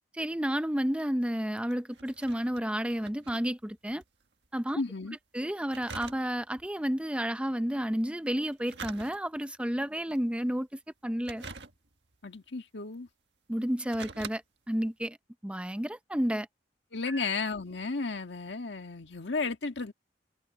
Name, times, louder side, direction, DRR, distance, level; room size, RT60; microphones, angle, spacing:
voice 1, 0.1-4.0 4.5-4.8 5.3-11.4 13.5-14.4 14.7-15.2 15.4-16.5 17.1-17.2, equal, 5° right, 0.7 m, -31 dB
sound 1, 1.3-4.2 4.4-4.5 5.7-6.7 8.5-9.6 10.1-10.5 11.2-12.2 12.9-13.0 13.6-14.4 14.8-14.9, right 4 dB, 75° right, 1.7 m, -45 dB
voice 2, 4.8-5.2 12.2-13.1 16.9-19.9, left 4 dB, 75° left, 1.8 m, -33 dB
head